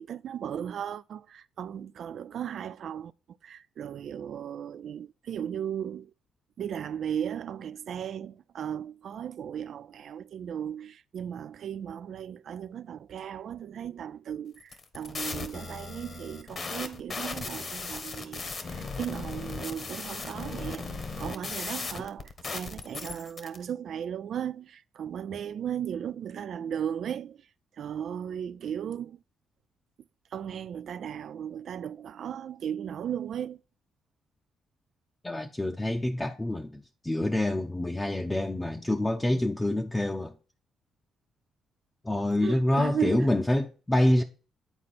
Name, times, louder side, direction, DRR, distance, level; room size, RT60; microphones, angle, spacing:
voice 1, 0.0-3.1 3.4-6.1 6.6-20.9 21.2-27.4 27.8-29.2 30.3-33.6 42.4-43.3, right 9 dB, 65° right, 0.3 m, -36 dB
sound 1, 14.6-23.6, left 4 dB, 40° left, 1.2 m, -37 dB
voice 2, 35.2-40.3 42.0-44.2, left 1 dB, 15° left, 0.7 m, -26 dB
9.0 x 4.2 x 4.2 m
cardioid pair, 90°, 0 cm